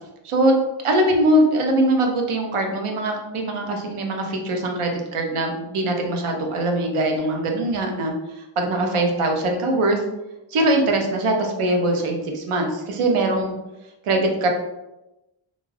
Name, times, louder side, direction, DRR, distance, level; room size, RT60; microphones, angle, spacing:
voice 1, 0.8-10.0 10.5-13.6 14.0-14.5, right 1 dB, 90° right, 2 dB, 0.7 m, -22 dB
2.5 x 2.3 x 3.1 m, 0.98 s
wide cardioid pair, 155°, 49 cm